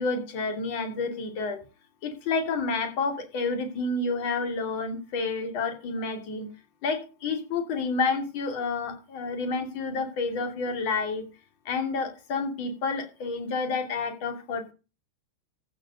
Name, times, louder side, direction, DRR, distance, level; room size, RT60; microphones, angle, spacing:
voice 1, 0.0-1.6 2.0-6.5 6.8-11.2 11.6-14.7, left 4 dB, 45° left, 6 dB, 2.7 m, -29 dB
15.0 x 5.0 x 6.4 m, 0.33 s
figure-of-eight pair, 90°, 0 cm